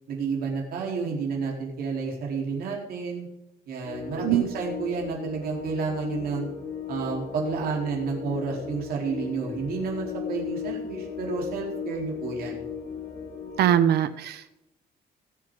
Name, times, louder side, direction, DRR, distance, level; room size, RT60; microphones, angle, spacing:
voice 1, 0.1-3.3 3.7-6.5 6.9-12.6, right 5 dB, 65° right, -1 dB, 4.0 m, -30 dB
sound 1, 3.8-13.8, left 7 dB, 90° left, 2.6 m, -36 dB
voice 2, 13.6-14.6, right 10 dB, 85° right, 12 dB, 1.0 m, -22 dB
20.5 x 7.7 x 3.8 m, 0.90 s
cardioid pair, 175°, 17 cm